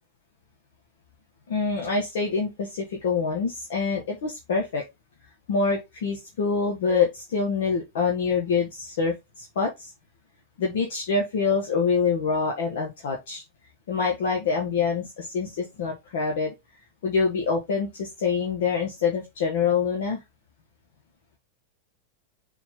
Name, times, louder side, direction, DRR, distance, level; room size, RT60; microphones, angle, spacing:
voice 1, 1.5-4.8 5.5-9.9 10.6-13.4 13.9-16.5 17.0-20.2, left 5 dB, 55° left, 0 dB, 1.9 m, -25 dB
6.9 x 4.0 x 4.0 m, 0.21 s
figure-of-eight pair, 90°, 0 cm